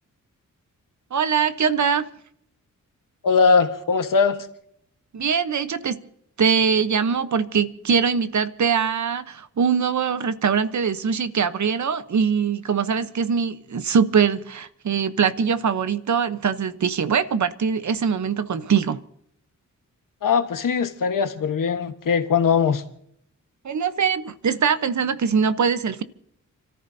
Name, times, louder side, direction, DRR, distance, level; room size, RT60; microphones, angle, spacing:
voice 1, 1.1-2.1 5.1-6.0 6.4-19.0 23.6-26.0, right 6 dB, 65° right, 1.0 m, -22 dB
voice 2, 3.2-4.5 20.2-22.8, left 5 dB, 85° left, 1.4 m, -20 dB
29.5 x 14.0 x 2.8 m
wide cardioid pair, 95°, 32 cm